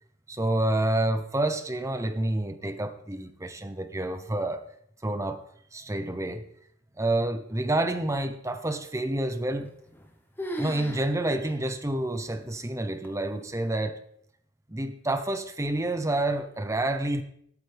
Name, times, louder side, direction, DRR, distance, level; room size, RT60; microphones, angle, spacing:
voice 1, 0.3-4.6 5.0-5.4 5.7-6.4 7.0-9.7 10.6-14.0 14.7-17.2, right 1 dB, 15° right, 9 dB, 0.8 m, -28 dB
sound 1, 9.6-10.1 10.4-11.1 11.4-11.5 12.2-12.3 13.0-13.4, equal, 10° left, 1.1 m, -36 dB
13.0 x 12.0 x 3.5 m, 0.67 s
head